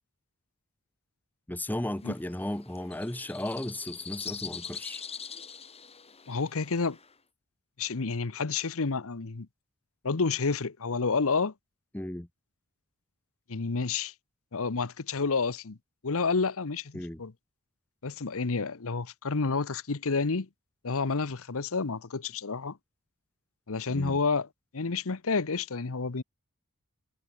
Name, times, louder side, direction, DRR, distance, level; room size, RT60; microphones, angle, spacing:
voice 1, 1.5-5.0 11.9-12.3 16.9-17.2 23.9-24.2, left 1 dB, 10° left, 0.9 m, -35 dB
sound 1, 2.0-7.1, left 6 dB, 30° left, 5.2 m, -43 dB
voice 2, 6.3-7.0 7.8-9.5 10.0-11.5 13.5-14.1 14.5-15.8 16.0-17.3 18.0-20.5 20.8-22.8 23.7-24.5 24.7-26.2, left 4 dB, 70° left, 1.0 m, -29 dB
head